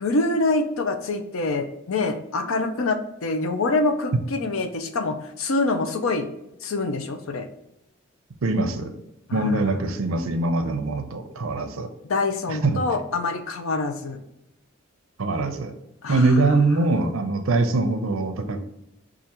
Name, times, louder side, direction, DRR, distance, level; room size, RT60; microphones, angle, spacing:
voice 1, 0.0-6.3 6.6-7.5 9.3-9.7 12.1-14.2 16.0-16.4, left 3 dB, 80° left, 8 dB, 0.5 m, -25 dB
voice 2, 8.4-8.9 9.3-11.9 12.5-12.8 15.2-15.7 16.1-18.6, right 2 dB, 85° right, 7 dB, 0.5 m, -23 dB
4.8 x 2.5 x 2.8 m, 0.86 s
head